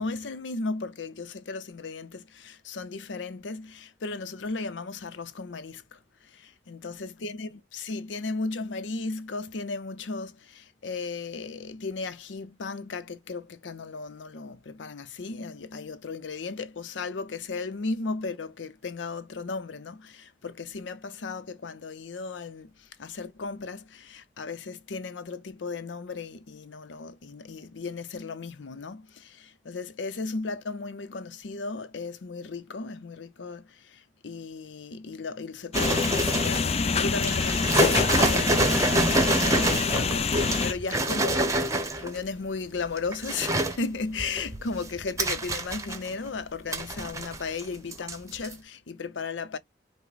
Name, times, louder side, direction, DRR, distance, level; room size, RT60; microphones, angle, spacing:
voice 1, 0.0-49.6, left 4 dB, 90° left, 0.6 m, -36 dB
sound 1, 35.7-40.7, left 5 dB, 35° left, 0.4 m, -26 dB
sound 2, 35.7-36.7 37.2-42.2 42.9-43.8 44.2-46.3 46.7-47.6 47.9-48.1 48.4-48.5, right 2 dB, 20° right, 0.8 m, -26 dB
5.8 x 2.1 x 3.9 m
head